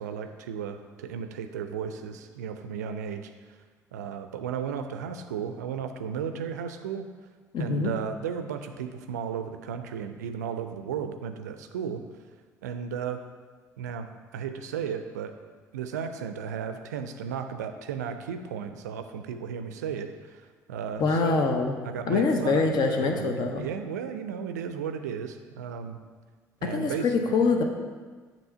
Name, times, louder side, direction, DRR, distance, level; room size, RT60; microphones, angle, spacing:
voice 1, 0.0-3.3 3.9-7.1 7.6-12.0 12.6-13.2 13.8-15.3 15.7-21.5 21.8-26.0 26.6-27.5, right 7 dB, 75° right, 8 dB, 0.4 m, -34 dB
voice 2, 7.5-7.9 21.0-21.8 22.1-23.7 26.6-27.6, left 4 dB, 50° left, 4 dB, 0.8 m, -24 dB
7.8 x 3.0 x 5.4 m, 1.5 s
figure-of-eight pair, 50°, 9 cm